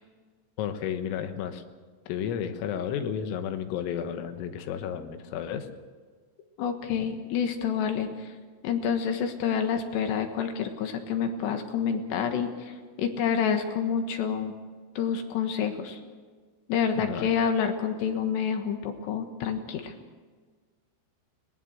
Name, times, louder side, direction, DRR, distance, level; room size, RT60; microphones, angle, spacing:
voice 1, 0.6-1.6 2.1-5.7 17.0-17.3, left 8 dB, 85° left, 8 dB, 3.9 m, -32 dB
voice 2, 6.6-8.3 8.6-14.5 15.0-16.0 16.7-19.9, left 7 dB, 70° left, 6 dB, 3.2 m, -28 dB
23.0 x 19.5 x 6.4 m, 1.5 s
omnidirectional pair, 5.8 m